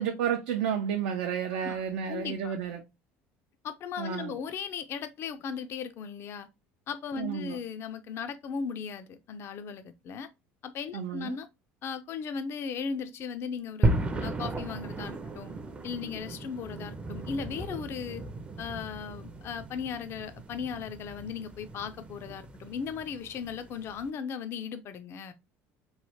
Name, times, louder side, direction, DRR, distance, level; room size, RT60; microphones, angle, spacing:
voice 1, 0.0-2.8 4.0-4.3 7.2-7.6 10.9-11.4, right 8 dB, 85° right, 0.4 m, -31 dB
voice 2, 2.1-2.5 3.6-6.5 6.9-10.3 10.6-11.5 11.8-13.9 14.2-15.5 15.8-18.2 18.6-25.3, left 6 dB, 45° left, 0.4 m, -37 dB
sound 1, 13.8-24.1, right 2 dB, 20° right, 0.4 m, -35 dB
3.1 x 2.1 x 2.7 m
supercardioid pair, 105°, 6 cm